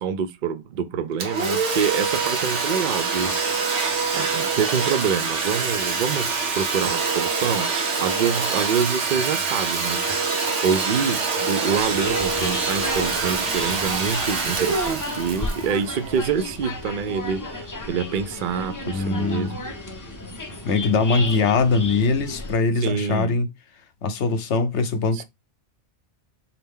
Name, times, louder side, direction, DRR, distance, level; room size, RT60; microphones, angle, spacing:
voice 1, 0.0-3.5 4.1-6.3 6.5-7.7 8.0-19.5 22.8-23.3 25.1-25.2, right 6 dB, 60° right, 0.6 m, -26 dB
Domestic sounds home sounds, 1.2-16.7, right 4 dB, 75° right, 1.1 m, -25 dB
sound 1, 11.7-22.5, left 2 dB, 25° left, 0.4 m, -34 dB
voice 2, 18.9-19.6 20.6-23.5 24.0-25.2, left 4 dB, 75° left, 1.0 m, -22 dB
4.2 x 2.7 x 3.6 m
omnidirectional pair, 1.2 m